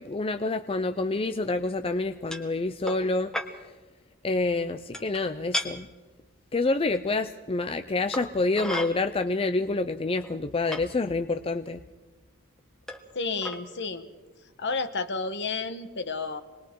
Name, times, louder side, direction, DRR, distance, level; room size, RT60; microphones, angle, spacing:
voice 1, 0.0-3.3 4.2-5.9 6.5-11.8, left 3 dB, 25° left, 8 dB, 0.5 m, -27 dB
sound 1, 2.3-2.5 2.9-3.1 3.3-3.5 4.9-5.2 5.5-5.7 6.9-7.0 8.1-8.9 9.7-9.8 10.2-10.8 11.7-11.8 12.9-13.1 13.4-13.6, left 1 dB, 5° left, 1.3 m, -33 dB
voice 2, 13.1-14.1 14.6-16.4, left 4 dB, 55° left, 10 dB, 1.4 m, -31 dB
27.0 x 20.5 x 4.7 m, 1.3 s
head